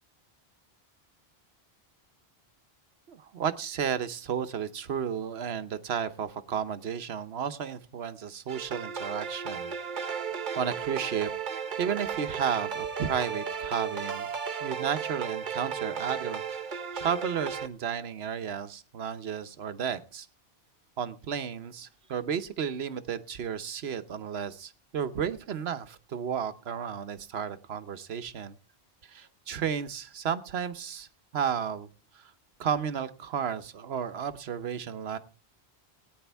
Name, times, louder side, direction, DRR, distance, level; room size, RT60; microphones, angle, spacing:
voice 1, 3.1-9.7 10.0-10.1 10.6-11.3 11.8-14.3 14.6-16.4 16.7-20.3 21.0-28.6 29.0-31.1 31.3-31.9 32.1-32.3 32.6-35.2, right 7 dB, 75° right, 12 dB, 1.1 m, -33 dB
sound 1, 8.5-17.7, right 7 dB, 50° right, 1.1 m, -35 dB
18.0 x 9.6 x 3.4 m, 0.36 s
omnidirectional pair, 1.1 m